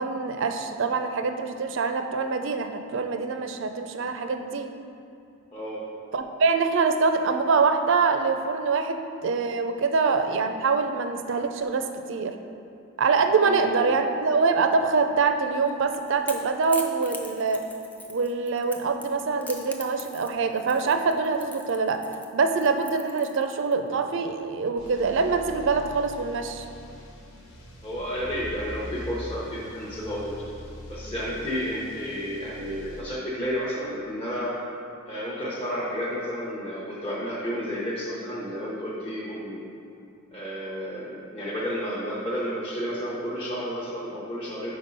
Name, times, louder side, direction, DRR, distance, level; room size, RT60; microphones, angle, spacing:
voice 1, 0.0-4.7 6.1-12.3 13.0-17.6 18.1-22.0 22.3-26.6, right 4 dB, 60° right, 7 dB, 0.4 m, -24 dB
voice 2, 5.5-5.8 13.4-13.9 27.8-30.4 30.9-34.6 35.1-39.7 40.3-44.7, equal, 25° left, -8 dB, 0.8 m, -31 dB
Crackle / Crack, 15.5-23.7, left 2 dB, 5° left, 0.3 m, -42 dB
sound 1, 24.8-33.0, equal, 75° left, 1.0 m, -43 dB
5.3 x 4.6 x 5.3 m, 2.7 s
head